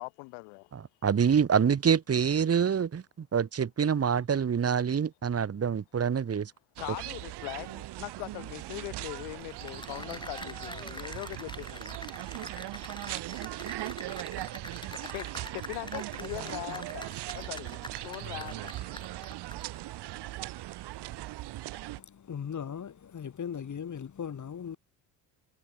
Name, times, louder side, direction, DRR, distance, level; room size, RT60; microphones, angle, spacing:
voice 1, 0.0-0.7 6.8-12.0 14.9-18.7, left 35 dB, 85° left, 3.1 m, -41 dB
voice 2, 0.7-6.5, right 7 dB, 35° right, 2.1 m, -26 dB
sound 1, 6.8-22.0, right 16 dB, 70° right, 6.8 m, -39 dB
Cheering / Applause, 9.4-19.8, left 2 dB, 10° left, 6.1 m, -45 dB
voice 3, 22.0-24.8, left 8 dB, 45° left, 5.6 m, -38 dB
supercardioid pair, 75°, 41 cm